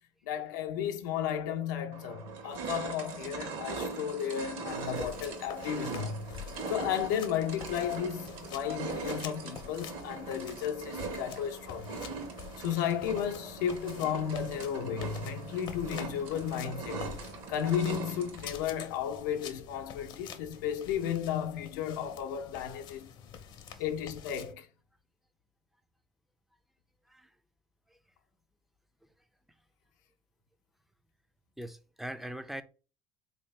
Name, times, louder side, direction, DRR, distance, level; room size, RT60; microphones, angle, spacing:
voice 1, 0.2-6.4 6.7-12.0 12.6-17.1 17.5-23.1 23.8-24.7, left 9 dB, 90° left, 0.6 m, -34 dB
sound 1, 1.3-1.4 1.9-18.7, right 4 dB, 65° right, 1.1 m, -41 dB
sound 2, 4.7-24.5, left 8 dB, 55° left, 0.6 m, -48 dB
voice 2, 31.6-32.6, right 1 dB, ahead, 0.4 m, -42 dB
3.4 x 2.8 x 3.2 m
supercardioid pair, 105°, 10 cm